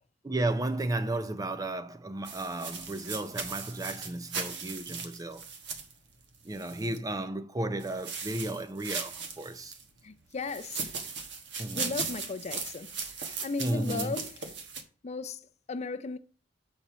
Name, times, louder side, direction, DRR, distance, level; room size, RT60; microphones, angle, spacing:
voice 1, 0.2-5.4 6.4-9.7 11.6-12.0 13.6-14.1, right 2 dB, 20° right, 0.5 m, -33 dB
sound 1, 2.2-7.0 7.8-9.8 10.4-14.8, right 5 dB, 65° right, 1.2 m, -38 dB
voice 2, 10.0-10.9 11.7-14.5 15.0-16.2, left 4 dB, 35° left, 0.5 m, -36 dB
6.6 x 4.4 x 6.0 m
head